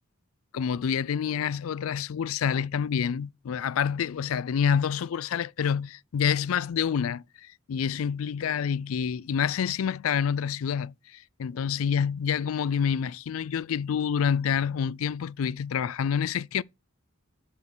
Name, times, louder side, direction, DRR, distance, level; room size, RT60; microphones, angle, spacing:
voice 1, 0.5-16.6, left 7 dB, 80° left, 0.4 m, -28 dB
6.6 x 5.7 x 6.1 m
head